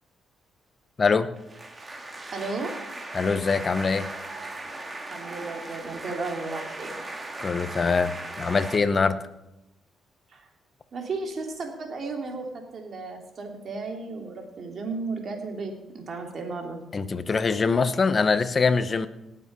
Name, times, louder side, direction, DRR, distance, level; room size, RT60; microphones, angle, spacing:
sound 1, 1.4-8.8, right 2 dB, 20° right, 2.1 m, -38 dB
voice 1, 2.3-2.8 5.1-6.9 10.3-10.5 10.9-12.5 12.7-16.8, right 3 dB, 50° right, 2 dB, 3.1 m, -34 dB
voice 2, 3.1-4.1 7.4-8.1 8.4-9.2 16.9-19.1, left 4 dB, 35° left, 12 dB, 1.0 m, -23 dB
18.5 x 7.6 x 5.5 m, 0.91 s
cardioid pair, 90°, 0 cm